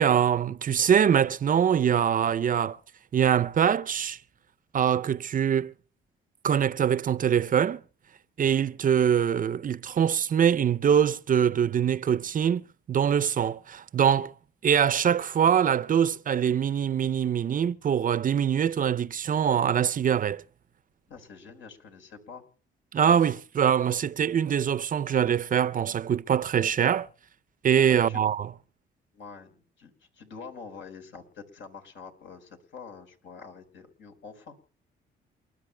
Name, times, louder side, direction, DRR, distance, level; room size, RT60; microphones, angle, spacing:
voice 1, 0.0-2.8 3.1-4.2 4.7-5.7 6.4-7.8 8.4-14.3 14.6-20.4 22.9-27.1 27.6-28.5, right 8 dB, 45° right, 0.5 m, -23 dB
voice 2, 21.1-22.4 27.8-28.2 29.1-34.6, left 5 dB, 70° left, 4.4 m, -46 dB
29.0 x 12.5 x 2.2 m
cardioid pair, 90°, 20 cm